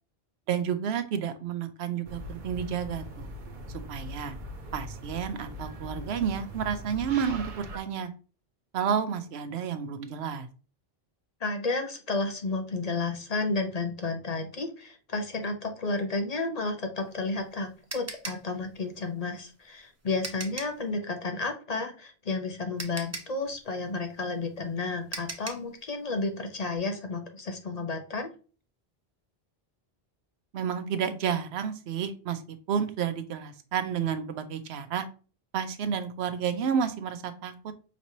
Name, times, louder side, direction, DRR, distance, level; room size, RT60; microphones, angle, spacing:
voice 1, 0.5-3.3 3.7-4.3 4.7-8.1 8.7-10.5 30.5-32.4 32.7-35.1 35.5-37.5, right 7 dB, 85° right, 10 dB, 0.9 m, -30 dB
sound 1, 2.0-7.8, equal, 55° right, 0.8 m, -41 dB
voice 2, 11.4-28.3, left 3 dB, 45° left, 5 dB, 0.6 m, -32 dB
sound 2, 17.0-20.9 22.3-22.4 22.8-25.7, right 2 dB, 20° right, 0.4 m, -40 dB
5.1 x 3.0 x 2.7 m, 0.36 s
omnidirectional pair, 1.1 m